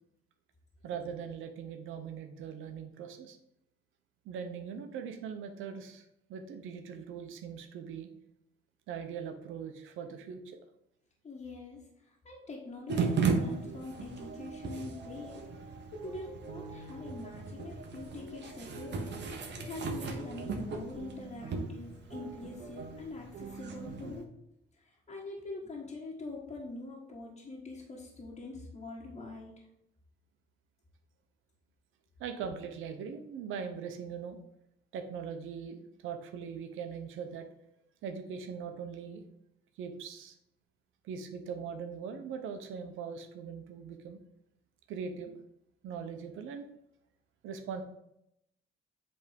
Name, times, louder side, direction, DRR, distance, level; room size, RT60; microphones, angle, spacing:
voice 1, 0.8-3.4 4.2-6.0 6.3-8.1 8.9-10.6 32.2-34.4 34.9-37.5 38.0-39.2 39.8-40.4 41.0-44.2 44.9-45.4 45.8-46.7 47.4-47.8, right 6 dB, 85° right, 6 dB, 0.9 m, -41 dB
voice 2, 11.2-19.1 19.6-24.3 24.8-29.5, left 3 dB, 35° left, -4 dB, 1.6 m, -44 dB
sound 1, 12.9-24.2, right 5 dB, 65° right, 1.2 m, -36 dB
7.9 x 3.6 x 5.1 m, 0.80 s
cardioid pair, 90°, 20 cm